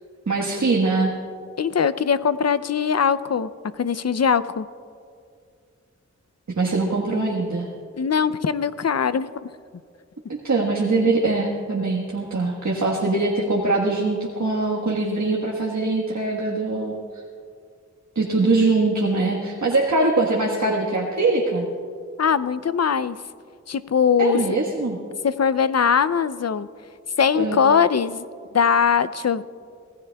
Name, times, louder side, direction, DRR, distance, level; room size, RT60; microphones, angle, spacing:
voice 1, 0.3-1.1 6.6-7.7 10.3-16.9 18.1-21.7 24.2-25.0 27.3-27.6, right 3 dB, 70° right, -3 dB, 1.5 m, -22 dB
voice 2, 1.6-3.5 3.8-4.7 8.0-9.5 22.2-23.2 23.7-24.4 25.2-26.7 27.2-28.3 28.5-29.4, left 7 dB, 60° left, 15 dB, 0.5 m, -21 dB
25.0 x 16.5 x 2.3 m, 2.3 s
wide cardioid pair, 45°, 29 cm